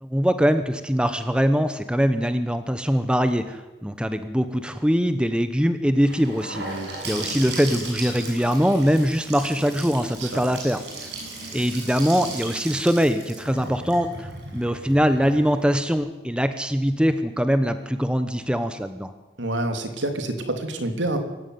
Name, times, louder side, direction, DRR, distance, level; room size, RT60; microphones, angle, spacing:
voice 1, 0.0-11.1 11.5-19.1, equal, 5° right, 9 dB, 1.0 m, -22 dB
Gurgling / Sink (filling or washing) / Bathtub (filling or washing), 6.1-15.9, right 2 dB, 65° right, 7.2 m, -36 dB
voice 2, 6.5-6.9 10.2-10.4 19.4-21.2, right 1 dB, 85° right, 6 dB, 3.3 m, -28 dB
24.5 x 15.0 x 9.5 m, 1.1 s
head